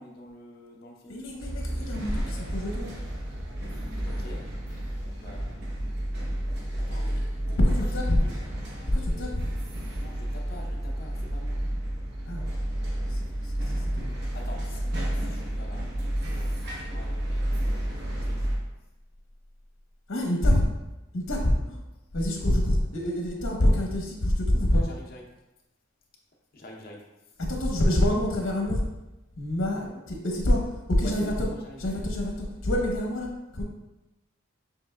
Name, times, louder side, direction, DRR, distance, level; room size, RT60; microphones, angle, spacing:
voice 1, 0.0-1.5 4.0-4.5 5.2-5.5 6.8-7.3 7.8-8.4 8.7-8.8 10.0-11.7 14.3-15.9 16.6-17.5 18.2-18.6 24.7-25.2 26.5-27.4 29.9-30.0 31.0-32.1, left 1 dB, 45° left, 0 dB, 0.7 m, -46 dB
voice 2, 1.1-2.9 4.2-4.4 7.6-8.2 8.9-9.4 12.3-12.5 13.0-14.1 20.1-20.7 21.1-21.8 22.1-24.8 27.4-28.8 29.3-31.5 31.8-33.6, left 1 dB, 80° left, 0 dB, 1.0 m, -26 dB
sound 1, 1.4-18.6, right 1 dB, 55° right, 0.8 m, -31 dB
6.8 x 3.0 x 2.3 m, 0.98 s
head